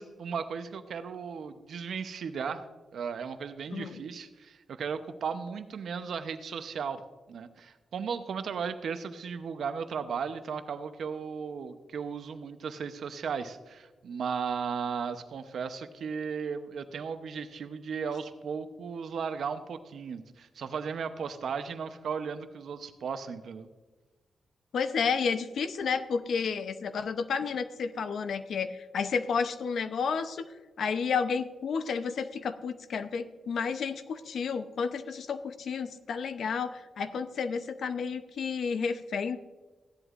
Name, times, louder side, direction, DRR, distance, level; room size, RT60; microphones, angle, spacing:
voice 1, 0.0-2.7 2.9-7.0 7.3-23.7, right 6 dB, 75° right, 9 dB, 0.8 m, -36 dB
voice 2, 24.7-30.4 30.8-39.4, left 5 dB, 75° left, 10 dB, 0.7 m, -31 dB
15.5 x 11.0 x 2.5 m, 1.3 s
cardioid pair, 100°, 0 cm